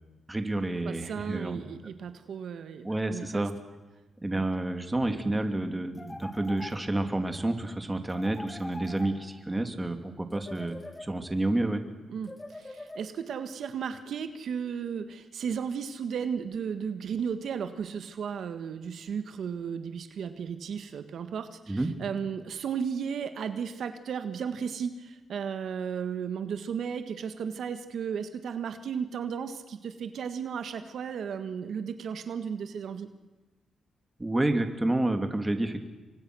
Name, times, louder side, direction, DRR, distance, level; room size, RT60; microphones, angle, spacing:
voice 1, 0.3-1.9 2.8-3.5 4.2-11.8 21.7-21.9 34.2-35.8, right 2 dB, 15° right, 7 dB, 2.8 m, -29 dB
voice 2, 0.8-3.4 4.3-4.4 12.1-33.1, right 7 dB, 75° right, 9 dB, 1.6 m, -34 dB
sound 1, 6.0-7.2 8.1-9.6 10.3-11.5 12.2-13.4, left 2 dB, 15° left, 2.4 m, -44 dB
29.5 x 24.5 x 6.3 m, 1.2 s
cardioid pair, 90°, 0 cm